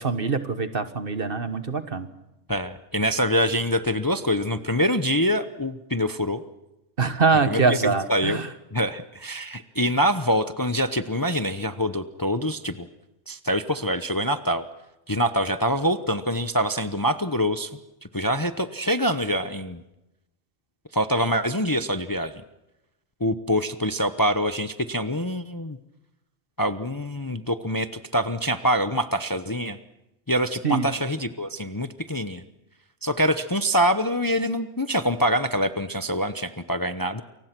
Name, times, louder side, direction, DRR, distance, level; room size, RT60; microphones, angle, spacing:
voice 1, 0.0-2.1 7.0-8.5 30.6-30.9, right 4 dB, 50° right, 10 dB, 1.6 m, -23 dB
voice 2, 2.5-6.4 7.5-7.8 8.1-8.4 8.7-12.9 13.3-14.6 15.1-17.7 18.1-19.8 20.9-22.3 23.2-25.8 26.6-29.8 30.3-32.4 33.0-37.2, equal, 20° left, 10 dB, 0.8 m, -25 dB
29.0 x 24.0 x 6.1 m, 0.95 s
omnidirectional pair, 1.3 m